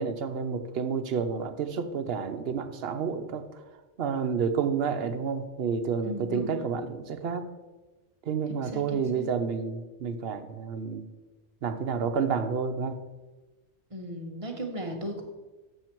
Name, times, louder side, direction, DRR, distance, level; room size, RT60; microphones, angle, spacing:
voice 1, 0.0-3.4 4.0-7.5 8.3-11.0 11.6-13.0, right 6 dB, 60° right, 8 dB, 0.9 m, -30 dB
voice 2, 6.0-6.6 8.7-9.3 13.9-15.2, equal, 30° right, 2 dB, 1.1 m, -36 dB
7.9 x 6.3 x 4.5 m, 1.2 s
omnidirectional pair, 1.2 m